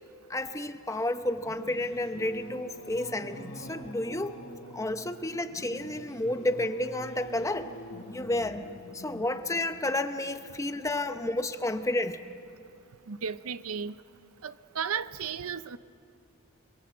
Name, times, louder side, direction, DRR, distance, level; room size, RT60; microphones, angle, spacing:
voice 1, 0.3-4.4 4.7-7.7 8.1-8.6 8.9-12.2, left 1 dB, 15° left, 9 dB, 0.8 m, -31 dB
Singing / Musical instrument, 1.1-11.2, equal, 50° left, 4.4 m, -46 dB
voice 2, 13.1-14.0 14.4-15.8, right 7 dB, 70° right, 14 dB, 0.6 m, -34 dB
28.5 x 21.0 x 7.9 m, 2.6 s
head